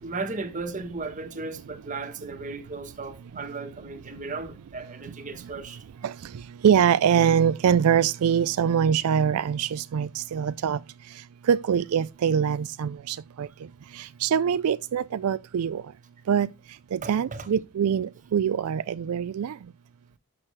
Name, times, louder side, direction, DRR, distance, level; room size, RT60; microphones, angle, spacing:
voice 1, 0.0-5.8 17.0-17.5, right 3 dB, 35° right, 1.3 m, -36 dB
voice 2, 6.6-10.8 11.5-13.5 14.0-15.8 16.3-16.5 16.9-19.5, right 8 dB, 85° right, 0.4 m, -23 dB
12.0 x 6.3 x 3.2 m
head